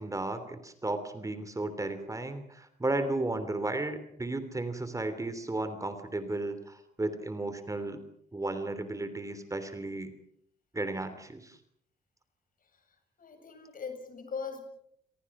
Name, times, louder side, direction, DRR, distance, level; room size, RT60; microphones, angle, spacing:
voice 1, 0.0-8.0 8.3-10.1 10.7-11.6, right 2 dB, 20° right, 11 dB, 3.2 m, -34 dB
voice 2, 13.2-14.6, left 5 dB, 50° left, 6 dB, 7.8 m, -40 dB
29.5 x 23.0 x 6.2 m, 0.70 s
cardioid pair, 95°, 18 cm